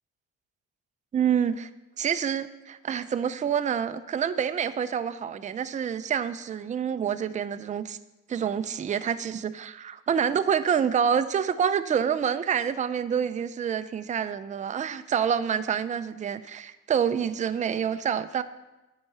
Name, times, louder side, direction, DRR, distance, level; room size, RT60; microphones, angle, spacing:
voice 1, 1.1-1.7 2.0-8.0 8.3-18.4, right 8 dB, 25° right, 11 dB, 0.4 m, -27 dB
8.7 x 4.7 x 5.5 m, 1.0 s
cardioid pair, 90°, 30 cm